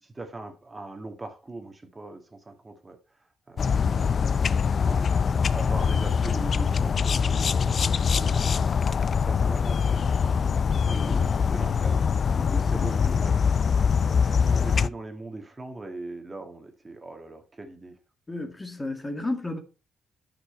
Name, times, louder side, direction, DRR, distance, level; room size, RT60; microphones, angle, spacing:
voice 1, 0.0-3.0 3.5-5.1 5.5-10.6 10.8-12.0 12.5-13.4 14.4-18.0, right 2 dB, 20° right, 1.9 m, -41 dB
sound 1, 3.6-14.9, left 6 dB, 45° left, 0.4 m, -23 dB
voice 2, 10.8-11.4 12.4-12.9 18.3-19.6, left 2 dB, 20° left, 1.7 m, -34 dB
10.0 x 6.1 x 4.4 m
cardioid pair, 90°, 0 cm